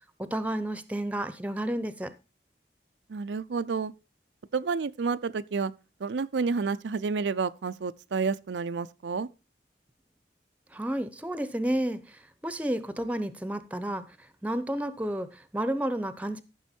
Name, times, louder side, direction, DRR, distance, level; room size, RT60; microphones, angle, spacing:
voice 1, 0.2-2.1 10.7-12.0 12.4-14.0 14.4-16.4, right 1 dB, 10° right, 0.7 m, -31 dB
voice 2, 3.1-3.9 4.5-5.7 6.0-9.3, right 5 dB, 85° right, 0.5 m, -30 dB
13.5 x 6.3 x 4.4 m
head